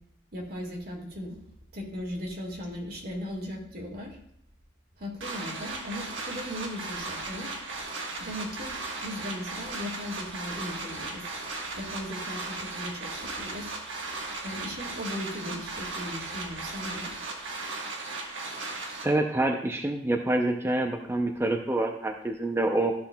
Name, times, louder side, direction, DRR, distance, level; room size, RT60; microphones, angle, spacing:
voice 1, 0.3-1.4 1.7-4.1 5.0-7.5 8.2-8.8 9.0-11.3 11.7-13.8 14.4-17.1, left 1 dB, 55° right, 0 dB, 1.9 m, -37 dB
sound 1, 5.2-19.0, right 3 dB, 85° right, 1.3 m, -36 dB
voice 2, 19.0-22.9, right 2 dB, 15° right, 3 dB, 0.5 m, -26 dB
13.5 x 5.8 x 2.3 m, 0.72 s
head